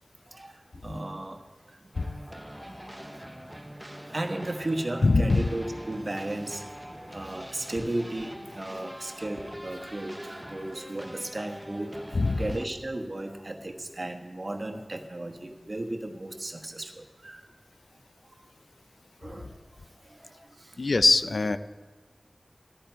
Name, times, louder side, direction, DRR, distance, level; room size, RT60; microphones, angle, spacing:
voice 1, 0.3-1.8 2.6-3.0 3.3-17.4 19.2-21.1, right 1 dB, 50° right, 4 dB, 1.2 m, -36 dB
sound 1, 1.9-12.7, equal, 10° right, 0.7 m, -43 dB
voice 2, 5.0-5.5 12.1-12.5 20.8-21.6, left 3 dB, 85° left, 12 dB, 0.4 m, -22 dB
15.0 x 11.0 x 4.5 m, 1.4 s
wide cardioid pair, 50°, 0 cm